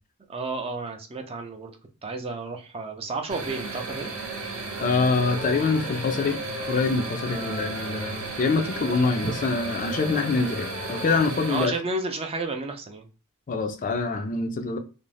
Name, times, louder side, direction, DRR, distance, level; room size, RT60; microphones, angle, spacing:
voice 1, 0.3-1.7 2.0-4.1 9.2-9.3 11.5-13.1, right 3 dB, 25° right, 0.4 m, -31 dB
sound 1, 3.3-11.7, right 3 dB, 70° right, 0.7 m, -34 dB
Wind instrument woodwind instrument, 4.4-8.0 8.3-12.2, left 3 dB, 85° left, 0.7 m, -42 dB
voice 2, 4.8-6.4 6.7-11.7 13.5-14.8, left 4 dB, 35° left, 0.4 m, -25 dB
2.5 x 2.0 x 3.1 m
head